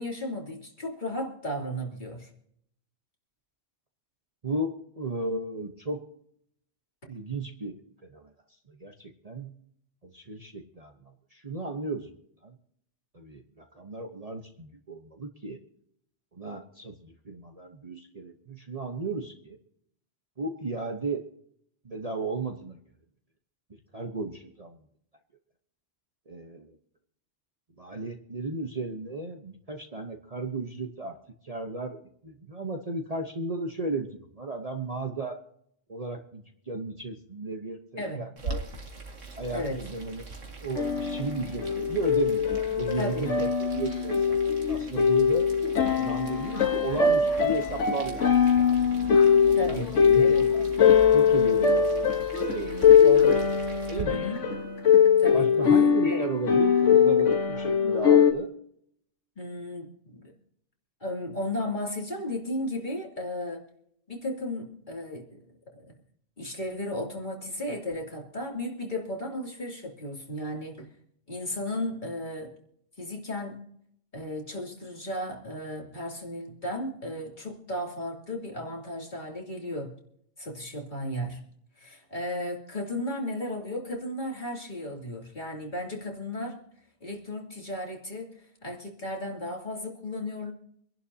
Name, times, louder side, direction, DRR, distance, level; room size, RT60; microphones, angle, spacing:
voice 1, 0.0-2.3 38.0-38.2 39.5-39.8 43.0-43.3 44.7-44.8 49.5-49.9 50.2-50.5 53.0-53.4 54.1-54.4 55.2-55.5 56.0-56.3 59.4-60.3 61.0-63.6 64.1-65.4 65.8-65.9 66.4-70.9 71.3-72.5 73.0-73.6 74.1-79.9 80.4-81.4 81.8-86.6 87.0-88.3 88.6-90.5, left 1 dB, 40° left, -1 dB, 3.1 m, -34 dB
voice 2, 4.4-6.0 7.1-7.7 8.0-8.3 8.7-9.6 10.0-12.1 12.4-12.6 13.1-15.6 16.3-19.6 20.4-21.3 21.8-22.8 23.9-24.8 26.3-26.8 27.8-31.2 31.4-35.4 35.9-38.6 39.4-40.3 40.6-44.4 44.6-45.5 46.0-48.2 48.5-48.8 49.3-50.7 51.1-53.0 53.9-54.2 55.3-58.5, right 3 dB, 35° right, 4 dB, 1.1 m, -34 dB
Boiling, 38.4-54.0, right 3 dB, 80° right, 2.4 m, -42 dB
sound 1, 40.8-58.3, left 7 dB, 75° left, 1.6 m, -22 dB
26.0 x 11.5 x 2.8 m, 0.69 s
omnidirectional pair, 1.3 m